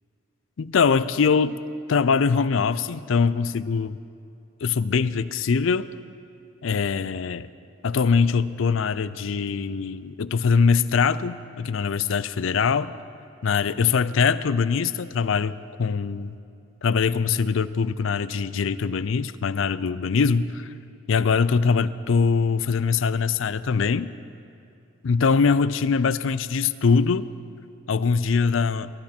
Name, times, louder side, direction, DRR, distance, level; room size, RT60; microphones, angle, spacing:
voice 1, 0.6-1.6 1.9-4.0 4.6-5.9 6.6-7.5 7.8-12.9 13.4-16.3 16.8-20.7 21.1-24.1 25.0-27.3 27.9-28.9, left 5 dB, 75° left, 16 dB, 0.4 m, -22 dB
22.5 x 12.5 x 4.4 m, 2.5 s
head